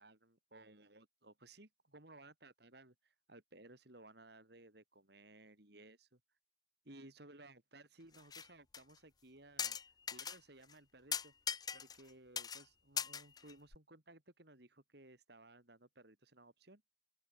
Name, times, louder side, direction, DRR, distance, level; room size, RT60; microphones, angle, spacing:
voice 1, 0.0-6.2 6.8-9.8 10.1-11.3 11.7-16.8, right 2 dB, 55° right, 3.2 m, -59 dB
sound 1, 8.1-8.5 8.7-8.8 9.6-10.4 10.7-10.8 11.1-12.1 12.4-12.6 13.0-13.8, left 7 dB, 20° left, 0.4 m, -40 dB
open air
head